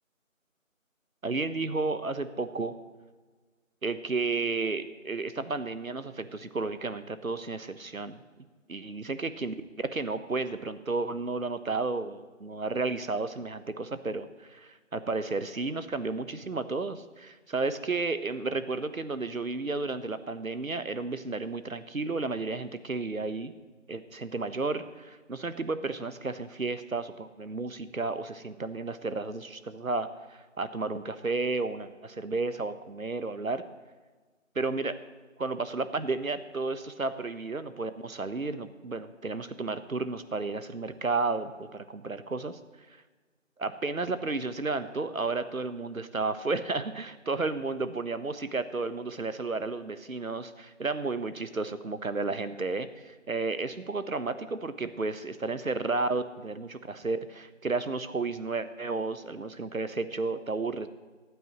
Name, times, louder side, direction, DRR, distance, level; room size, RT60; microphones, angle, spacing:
voice 1, 1.2-2.7 3.8-8.2 8.7-23.5 23.9-33.6 34.5-34.9 35.4-42.6 43.6-60.9, right 3 dB, 85° right, 11 dB, 1.1 m, -32 dB
25.0 x 9.2 x 3.1 m, 1.4 s
figure-of-eight pair, 180°, 40 cm